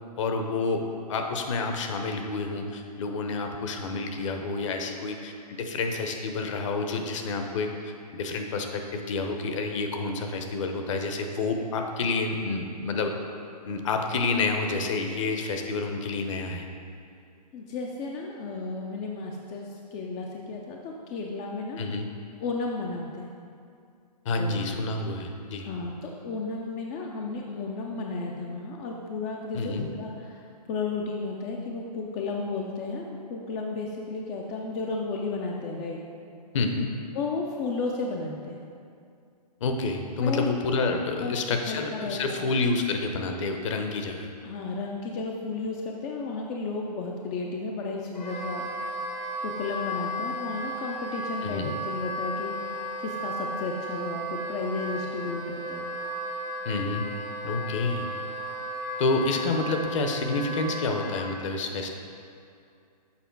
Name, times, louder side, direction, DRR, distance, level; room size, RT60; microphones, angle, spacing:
voice 1, 0.2-13.1 13.6-16.7 21.8-22.1 24.2-25.7 29.5-29.9 36.5-36.9 39.6-44.3 51.4-51.7 56.6-57.0 57.4-58.1 59.0-61.9, left 3 dB, 45° left, 4 dB, 0.8 m, -29 dB
voice 2, 17.5-21.8 22.4-23.3 24.4-24.7 25.6-30.4 30.7-36.0 37.1-38.6 40.2-40.5 41.2-42.4 44.4-48.6 49.4-55.9, left 3 dB, 15° left, 0 dB, 0.3 m, -33 dB
Wind instrument woodwind instrument, 48.1-61.3, equal, 85° left, 1.3 m, -34 dB
7.1 x 4.9 x 4.5 m, 2.5 s
hypercardioid pair, 135°, 21 cm